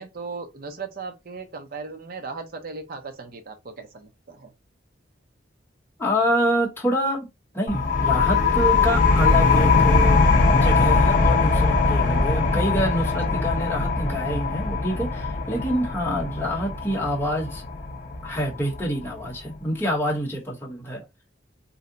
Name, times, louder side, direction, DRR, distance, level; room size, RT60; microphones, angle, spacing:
voice 1, 0.0-4.5, right 4 dB, 50° right, 0.6 m, -37 dB
voice 2, 6.0-7.3 7.5-10.2 10.5-17.6 18.2-21.0, equal, 10° left, 0.9 m, -26 dB
sound 1, 7.7-19.0, left 3 dB, 45° left, 0.5 m, -21 dB
2.6 x 2.1 x 3.8 m
head